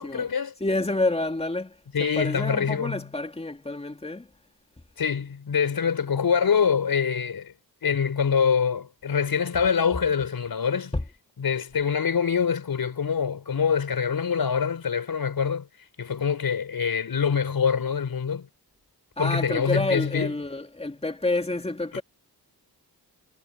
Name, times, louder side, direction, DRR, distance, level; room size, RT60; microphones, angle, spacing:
voice 1, 0.0-0.5 1.9-3.0 5.0-7.5 7.8-10.9 11.4-15.7 16.0-18.5 19.2-20.3, left 6 dB, 65° left, 4.9 m, -25 dB
voice 2, 0.6-4.3 10.9-11.0 19.2-22.0, left 2 dB, 15° left, 2.7 m, -28 dB
wide cardioid pair, 90°, 39 cm